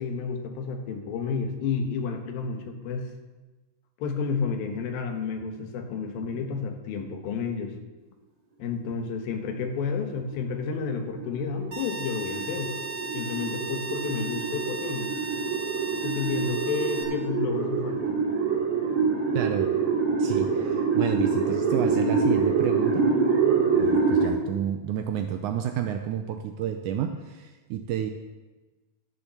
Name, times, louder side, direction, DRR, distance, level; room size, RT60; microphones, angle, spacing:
voice 1, 0.0-3.1 4.0-7.8 8.6-12.7 13.1-15.1 16.0-18.2, left 5 dB, 85° left, 5 dB, 3.1 m, -31 dB
sound 1, 9.9-24.3, right 5 dB, 55° right, 3.3 m, -26 dB
sound 2, 11.7-17.0, right 3 dB, 35° right, 2.2 m, -36 dB
voice 2, 19.3-19.7 20.2-23.1 23.8-28.1, right 9 dB, 75° right, 6 dB, 1.8 m, -30 dB
12.0 x 7.2 x 6.9 m, 1.2 s
omnidirectional pair, 4.1 m